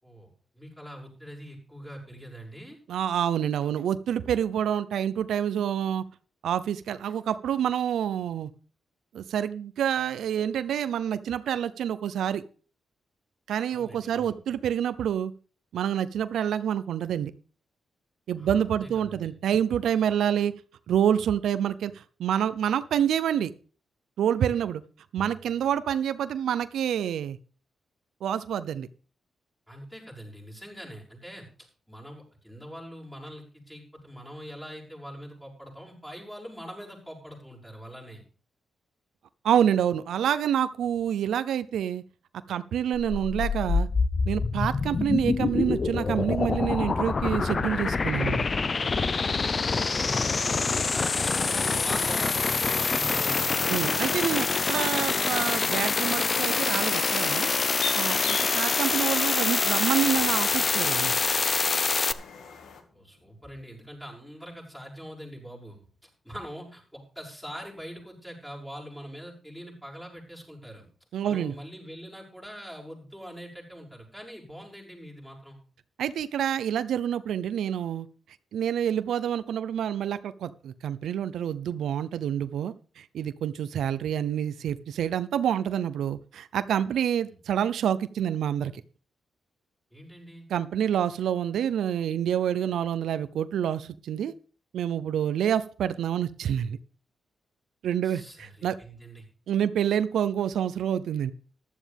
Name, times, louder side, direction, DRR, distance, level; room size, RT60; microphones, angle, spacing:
voice 1, 0.0-2.8 13.7-14.4 18.4-19.3 24.4-24.7 29.7-38.2 49.8-53.7 62.9-70.9 71.2-75.6 87.2-87.4 89.9-90.5 98.0-99.2, equal, 5° left, -4 dB, 6.5 m, -43 dB
voice 2, 2.9-6.0 6.4-8.5 9.1-12.4 13.5-15.3 15.7-17.3 18.3-20.5 20.9-23.5 24.2-24.8 25.1-27.4 28.2-28.9 39.4-42.0 42.5-43.9 44.3-48.5 53.7-57.5 57.9-61.1 71.1-71.5 76.0-78.1 78.5-88.7 90.5-94.3 94.7-96.8 97.8-98.8 99.5-101.3, right 9 dB, 90° right, 13 dB, 0.6 m, -27 dB
sound 1, 42.9-62.1, left 4 dB, 40° left, 0.7 m, -26 dB
sound 2, 57.8-62.8, left 5 dB, 80° left, 1.9 m, -40 dB
sound 3, 60.0-64.4, left 3 dB, 65° left, 2.7 m, -53 dB
14.5 x 11.5 x 3.5 m, 0.38 s
cardioid pair, 100°, 0 cm